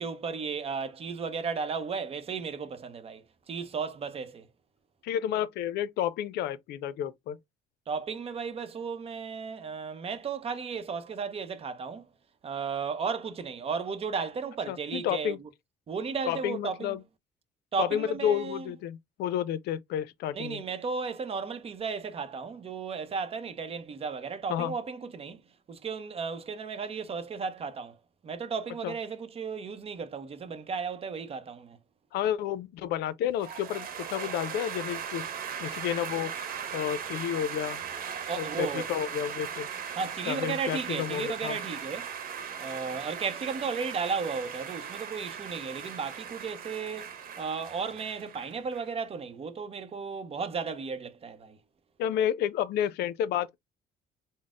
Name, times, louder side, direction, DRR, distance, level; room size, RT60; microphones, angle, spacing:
voice 1, 0.0-4.5 7.9-12.0 12.4-15.4 15.9-17.0 17.7-18.7 20.3-25.4 25.7-28.0 28.2-31.8 38.3-38.9 40.0-42.1 42.6-51.6, right 5 dB, 35° right, 0.7 m, -34 dB
voice 2, 5.0-7.4 14.7-15.4 16.3-17.0 17.8-20.6 24.5-24.7 28.8-28.9 32.1-35.3 35.6-36.3 36.7-37.8 38.4-39.7 40.3-41.6 52.0-53.6, left 10 dB, 75° left, 0.5 m, -31 dB
sound 1, 33.4-48.9, right 7 dB, 60° right, 0.9 m, -38 dB
4.0 x 2.0 x 3.5 m
cardioid pair, 110°, 17 cm